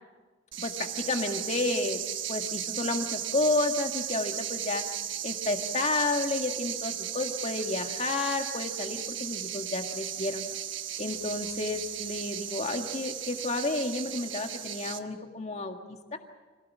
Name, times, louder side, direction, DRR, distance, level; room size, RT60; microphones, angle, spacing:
sound 1, 0.5-15.0, right 10 dB, 70° right, 1.2 m, -36 dB
voice 1, 0.6-2.0 2.3-4.8 5.2-10.4 11.0-16.2, left 2 dB, 35° left, 4 dB, 1.9 m, -31 dB
25.5 x 17.0 x 7.4 m, 1.3 s
head